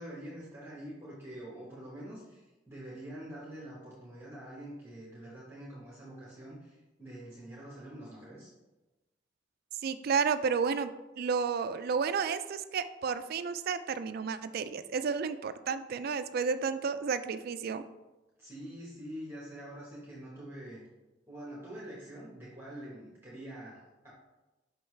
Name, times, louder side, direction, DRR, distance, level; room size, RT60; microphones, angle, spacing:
voice 1, 0.0-8.5 18.4-20.8 21.3-24.1, right 1 dB, 10° right, -6 dB, 1.1 m, -45 dB
voice 2, 9.8-17.8, right 5 dB, 50° right, 11 dB, 0.3 m, -32 dB
5.6 x 5.5 x 3.2 m, 1.1 s
head